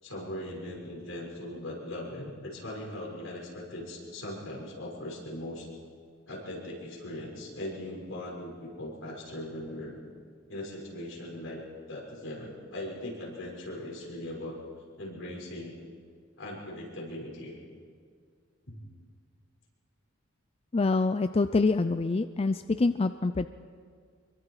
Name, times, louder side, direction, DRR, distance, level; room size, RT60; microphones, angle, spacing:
voice 1, 0.0-5.7 6.3-10.0 10.5-11.6 11.9-14.6 15.0-15.7 16.4-17.6 18.7-18.8, left 1 dB, 70° left, -3 dB, 6.3 m, -39 dB
voice 2, 20.7-23.5, left 3 dB, 30° left, 11 dB, 0.4 m, -26 dB
25.5 x 23.0 x 4.9 m, 2.1 s
head